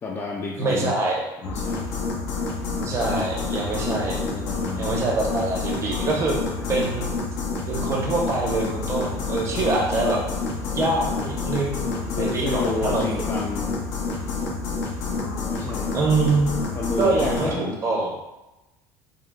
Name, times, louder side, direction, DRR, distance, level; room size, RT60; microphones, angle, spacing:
voice 1, 0.0-0.9 1.4-1.9 4.2-4.9 6.6-6.8 9.5-9.7 12.1-13.8 15.5-16.1 16.7-17.8, left 3 dB, 25° left, -2 dB, 0.4 m, -31 dB
voice 2, 0.6-1.2 2.8-4.2 4.8-6.3 6.7-7.1 7.7-10.2 10.5-11.9 12.2-13.0 15.9-16.5 17.0-18.1, right 3 dB, 30° right, -2 dB, 0.8 m, -24 dB
sound 1, 1.4-17.5, left 4 dB, 85° left, 0.7 m, -28 dB
3.7 x 2.2 x 2.2 m, 1.0 s
supercardioid pair, 105°, 9 cm